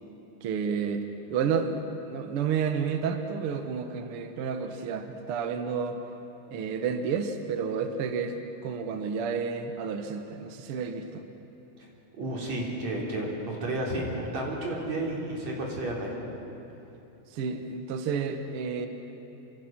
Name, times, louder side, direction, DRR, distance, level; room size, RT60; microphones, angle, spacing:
voice 1, 0.4-1.0 1.3-6.0 6.5-8.4 8.6-11.3 17.3-18.9, right 6 dB, 65° right, 6 dB, 1.4 m, -30 dB
voice 2, 12.2-16.1, right 1 dB, 50° right, -2 dB, 5.0 m, -32 dB
28.5 x 25.5 x 6.1 m, 3.0 s
omnidirectional pair, 4.1 m